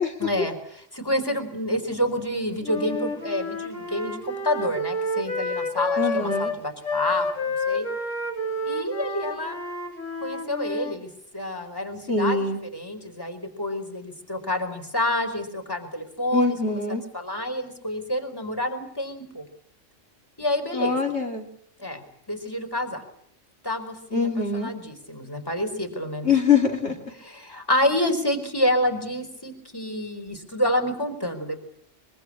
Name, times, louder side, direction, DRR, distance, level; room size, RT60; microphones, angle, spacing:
voice 1, 0.2-7.9 8.6-9.6 10.2-19.5 20.4-21.0 21.8-23.0 23.6-26.3 27.2-31.6, left 1 dB, 20° left, 5 dB, 4.6 m, -28 dB
Wind instrument woodwind instrument, 2.6-11.0, left 2 dB, 80° left, 3.7 m, -29 dB
voice 2, 6.0-6.5 12.1-12.6 16.3-17.0 20.7-21.4 24.1-24.7 26.2-26.9, left 5 dB, 60° left, 2 dB, 3.0 m, -23 dB
24.5 x 23.5 x 8.7 m, 0.67 s
omnidirectional pair, 1.3 m